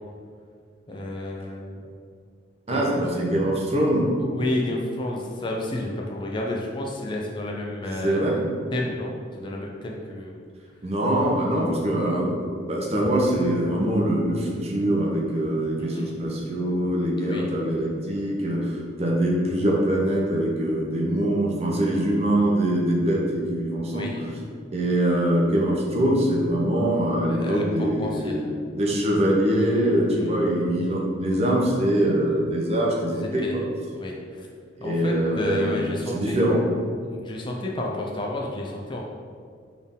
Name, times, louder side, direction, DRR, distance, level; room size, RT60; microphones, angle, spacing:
voice 1, 0.9-1.8 2.7-3.1 4.2-8.3 8.7-10.4 11.5-11.7 15.8-16.1 17.2-17.6 21.7-22.1 23.9-24.3 27.3-28.5 30.1-30.4 33.0-33.6 33.9-34.5 34.8-36.4 37.0-39.0, left 1 dB, 25° left, -1 dB, 0.4 m, -31 dB
voice 2, 2.7-4.1 8.0-8.4 10.8-24.1 24.7-33.6 34.8-35.7 36.1-36.6, right 1 dB, 35° right, -2 dB, 0.7 m, -23 dB
4.3 x 3.5 x 3.6 m, 2.2 s
head